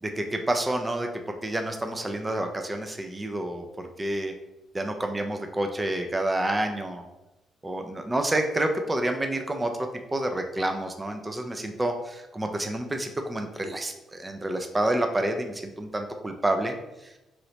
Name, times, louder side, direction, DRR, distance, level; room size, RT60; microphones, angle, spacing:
voice 1, 0.0-1.1 1.4-4.3 4.7-7.0 7.6-9.7 10.1-16.8 17.0-17.1, right 1 dB, 15° right, 5 dB, 0.3 m, -28 dB
3.1 x 2.9 x 2.8 m, 0.98 s
cardioid pair, 90°, 0 cm